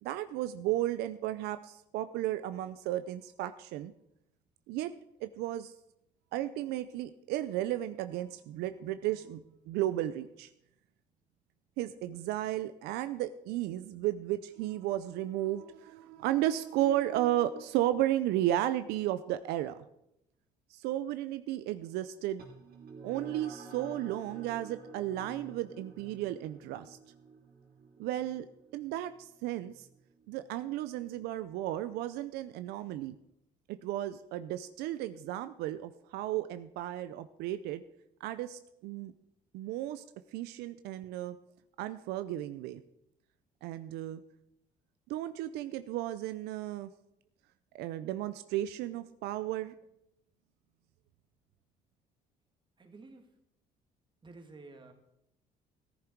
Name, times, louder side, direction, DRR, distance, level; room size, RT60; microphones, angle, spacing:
voice 1, 0.0-3.9 4.7-4.9 5.2-5.7 6.3-10.5 11.8-19.8 20.7-22.4 23.0-27.0 28.0-28.5 28.7-29.9 30.3-33.2 33.7-37.8 38.2-39.1 39.5-40.0 40.3-41.4 41.8-42.8 43.6-44.2 45.1-46.9 47.7-49.7, right 13 dB, 85° right, 12 dB, 0.5 m, -34 dB
sound 1, 22.4-31.2, right 4 dB, 70° right, 2.6 m, -51 dB
voice 2, 52.8-53.3 54.2-54.9, right 3 dB, 30° right, 4 dB, 2.3 m, -51 dB
14.0 x 10.5 x 4.6 m, 0.82 s
cardioid pair, 90°, 16 cm